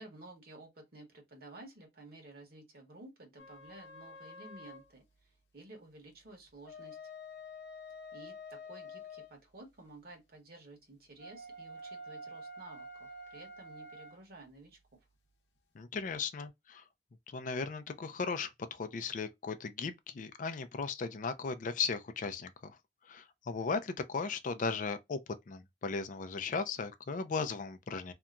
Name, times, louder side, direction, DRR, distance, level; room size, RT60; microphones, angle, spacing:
voice 1, 0.0-5.0 5.5-7.0 8.1-15.0, right 2 dB, 60° right, 1.2 m, -53 dB
sound 1, 3.4-4.9 6.5-9.3 11.2-14.2, left 1 dB, 75° left, 0.7 m, -48 dB
voice 2, 15.8-16.8 17.3-22.8 23.1-25.2 25.5-28.1, left 5 dB, 45° left, 0.4 m, -37 dB
2.8 x 2.2 x 2.4 m
head